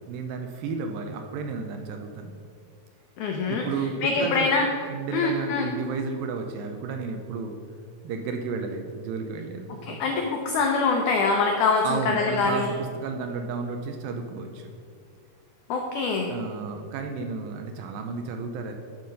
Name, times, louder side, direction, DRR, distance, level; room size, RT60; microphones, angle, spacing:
voice 1, 0.1-2.3 3.5-4.6 4.9-7.6 8.0-10.0 11.8-14.7 16.3-18.8, right 4 dB, 80° right, 5 dB, 2.2 m, -32 dB
voice 2, 3.2-3.6 4.0-4.7 5.1-5.7 9.9-12.7 15.7-16.3, left 4 dB, 85° left, 1 dB, 1.7 m, -24 dB
11.0 x 4.0 x 5.3 m, 2.2 s
omnidirectional pair, 4.4 m